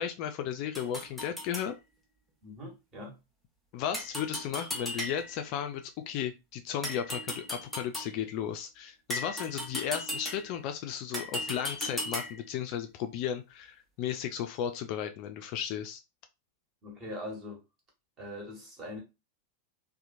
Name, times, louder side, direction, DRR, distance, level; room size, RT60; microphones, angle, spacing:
voice 1, 0.0-1.8 3.7-16.0, left 9 dB, 45° left, 0.3 m, -35 dB
sound 1, 0.7-1.7 3.9-5.5 6.8-8.2 9.1-10.6 11.1-12.5, left 1 dB, 5° right, 0.8 m, -37 dB
voice 2, 2.4-3.1 16.8-17.6 18.2-19.0, left 1 dB, 30° right, 1.3 m, -41 dB
2.8 x 2.1 x 2.5 m
figure-of-eight pair, 90°, 0 cm